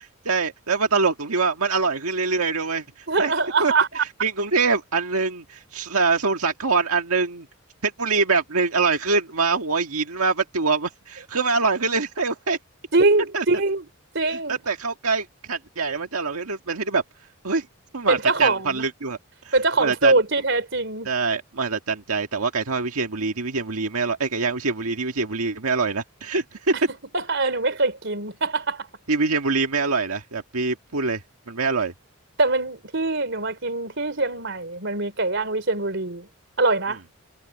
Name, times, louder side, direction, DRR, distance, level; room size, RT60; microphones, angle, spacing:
voice 1, 0.2-3.3 3.6-7.5 7.8-12.6 13.3-13.4 14.3-17.0 17.4-17.7 17.9-20.1 21.0-26.7 29.1-31.9, right 4 dB, 90° right, 1.7 m, -24 dB
voice 2, 3.1-4.0 12.9-13.8 14.1-14.6 18.1-18.8 19.5-21.1 27.1-28.9 32.4-36.3 36.6-37.0, right 3 dB, 55° right, 4.0 m, -23 dB
head